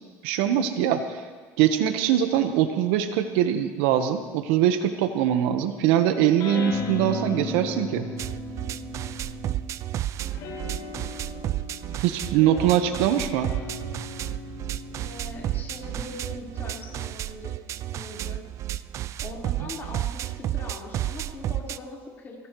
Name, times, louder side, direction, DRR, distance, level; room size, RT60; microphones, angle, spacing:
voice 1, 0.2-1.2 1.6-8.1 12.0-13.5, right 10 dB, 80° right, 8 dB, 1.2 m, -22 dB
sound 1, 6.4-9.8 10.3-17.1, left 2 dB, 60° left, 4.5 m, -37 dB
sound 2, 8.2-21.8, right 13 dB, 45° right, 0.4 m, -32 dB
voice 2, 10.2-11.3 14.9-17.5 17.9-18.4 19.2-22.4, left 2 dB, 30° left, -3 dB, 4.4 m, -41 dB
23.5 x 17.5 x 3.2 m, 1.5 s
cardioid pair, 125°, 7 cm